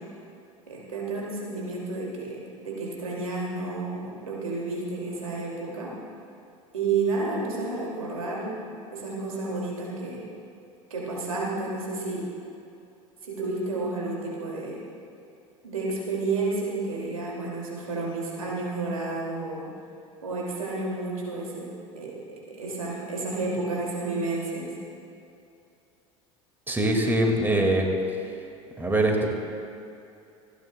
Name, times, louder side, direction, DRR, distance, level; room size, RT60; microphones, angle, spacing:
voice 1, 0.7-5.9 6.7-10.2 10.9-12.3 13.2-14.8 15.6-19.7 20.2-21.7 21.9-24.8, right 3 dB, 85° right, -4 dB, 2.4 m, -31 dB
voice 2, 26.7-27.9 28.8-29.3, right 1 dB, 10° right, 1 dB, 2.0 m, -23 dB
28.0 x 10.0 x 2.2 m, 2.6 s
figure-of-eight pair, 70°, 17 cm